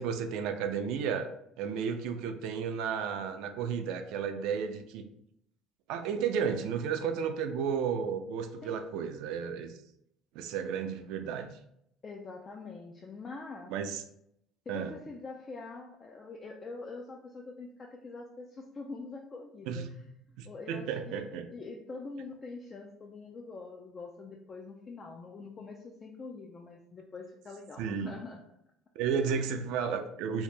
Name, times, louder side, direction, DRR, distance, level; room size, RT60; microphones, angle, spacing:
voice 1, 0.0-5.0 5.9-9.7 10.4-11.5 13.7-14.0 14.7-14.9 19.7-19.9 20.4-21.5 27.8-28.2 29.0-30.4, right 6 dB, 75° right, 7 dB, 0.4 m, -33 dB
voice 2, 12.0-13.7 14.7-19.8 20.3-28.4 29.2-29.5, left 3 dB, 25° left, 0 dB, 0.3 m, -44 dB
2.8 x 2.7 x 3.3 m, 0.75 s
cardioid pair, 140°, 0 cm